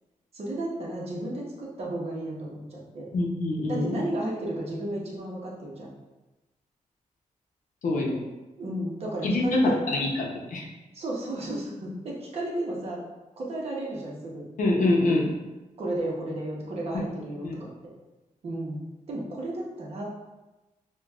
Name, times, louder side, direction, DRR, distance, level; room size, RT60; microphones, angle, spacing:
voice 1, 0.3-3.1 3.7-5.9 8.6-9.8 10.9-13.0 13.4-14.4 15.8-17.7 18.4-20.0, right 1 dB, 50° right, -4 dB, 0.9 m, -33 dB
voice 2, 3.1-4.0 7.8-8.2 9.2-10.7 14.6-15.3 17.4-17.6, left 2 dB, 75° left, -1 dB, 0.7 m, -25 dB
5.8 x 2.3 x 2.3 m, 1.1 s
wide cardioid pair, 165°, 13 cm